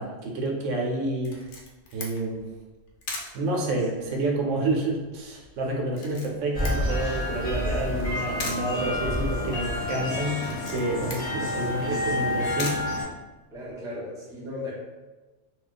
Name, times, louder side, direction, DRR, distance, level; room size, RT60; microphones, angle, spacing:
voice 1, 0.0-1.4 1.9-2.5 3.3-12.8, right 2 dB, 75° right, 0 dB, 0.9 m, -29 dB
Camera, 1.2-13.7, left 3 dB, 75° left, 0.9 m, -42 dB
sound 1, 6.5-13.0, left 1 dB, 35° left, 0.9 m, -29 dB
voice 2, 13.5-14.7, left 2 dB, 5° right, -6 dB, 0.4 m, -36 dB
2.3 x 2.3 x 3.9 m, 1.2 s
omnidirectional pair, 1.3 m